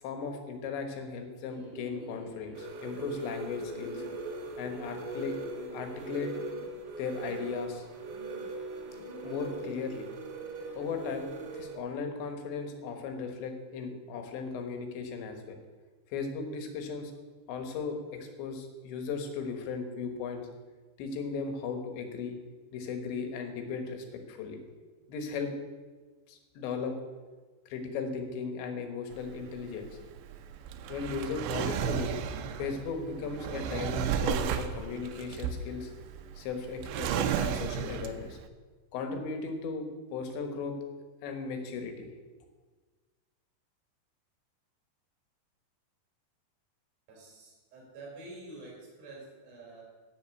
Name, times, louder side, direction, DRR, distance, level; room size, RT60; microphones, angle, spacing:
voice 1, 0.0-4.0 4.6-5.4 5.7-6.3 7.0-7.9 9.2-10.1 10.8-15.6 16.1-17.1 17.5-20.5 21.0-22.4 22.7-24.6 25.1-25.5 26.3-26.9 27.7-30.0 30.9-32.2 32.6-35.9 36.4-38.4 38.9-39.9 40.1-40.8 41.2-42.1, left 5 dB, 85° left, 5 dB, 3.6 m, -36 dB
Bird, 1.5-11.2, equal, 20° left, 1.5 m, -49 dB
sound 1, 2.5-11.8, right 3 dB, 65° right, 3.1 m, -40 dB
Drawer open or close, 29.1-38.4, right 8 dB, 85° right, 2.9 m, -33 dB
voice 2, 47.1-49.8, right 2 dB, 50° right, -3 dB, 5.1 m, -48 dB
11.0 x 7.0 x 8.3 m, 1.4 s
omnidirectional pair, 5.0 m